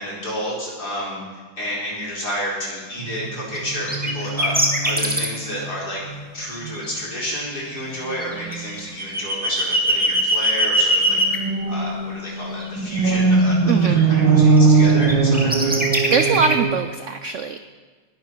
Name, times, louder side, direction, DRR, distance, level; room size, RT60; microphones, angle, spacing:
voice 1, 0.0-4.6 4.8-6.0 6.3-11.2 11.7-15.9, equal, 55° left, -5 dB, 5.3 m, -30 dB
sound 1, 3.0-5.8 6.1-6.3 6.6-7.0 8.3-8.7 11.1-16.8, right 4 dB, 80° right, 1.8 m, -20 dB
sound 2, 3.5-3.6 3.9-5.3 6.4-6.9 7.2-11.4 12.3-13.5 14.0-14.6 14.8-16.5, right 1 dB, 5° right, 1.8 m, -21 dB
voice 2, 13.7-14.0 16.1-17.6, right 5 dB, 65° right, 9 dB, 0.7 m, -22 dB
19.5 x 12.0 x 4.6 m, 1.4 s
omnidirectional pair, 2.0 m